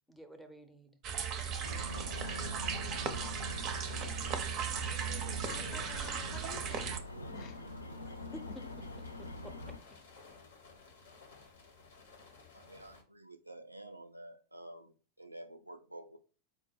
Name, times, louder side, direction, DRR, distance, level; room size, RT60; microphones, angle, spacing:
voice 1, 0.1-1.0 8.0-8.5 9.2-10.0, right 1 dB, ahead, 0.7 m, -52 dB
sound 1, 1.0-7.0, right 7 dB, 35° right, 0.5 m, -37 dB
sound 2, 1.4-13.0, left 4 dB, 65° left, 0.9 m, -57 dB
sound 3, 1.6-9.8, left 2 dB, 85° left, 0.4 m, -44 dB
voice 2, 5.4-6.9 7.3-7.7, left 4 dB, 40° left, 0.7 m, -49 dB
voice 3, 12.5-16.2, right 1 dB, 85° right, 0.4 m, -50 dB
4.5 x 2.2 x 4.5 m
figure-of-eight pair, 90°, 0 cm